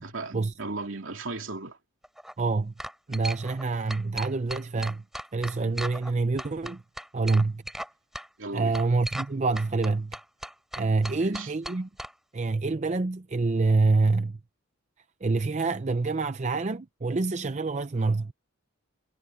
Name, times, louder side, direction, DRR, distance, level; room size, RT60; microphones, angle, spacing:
voice 1, 0.0-1.8 8.4-8.7 11.0-11.5, right 3 dB, 65° right, 3.0 m, -36 dB
sound 1, 2.0-2.3 2.8-3.6 3.9-6.1 6.4-7.9 8.1-8.3 8.7-9.3 9.6-12.1, equal, ahead, 7.9 m, -37 dB
voice 2, 2.4-2.7 3.1-5.0 5.3-6.8 7.1-7.6 8.5-10.2 10.8-11.9 12.3-14.4 15.2-18.3, right 3 dB, 35° right, 0.5 m, -26 dB
head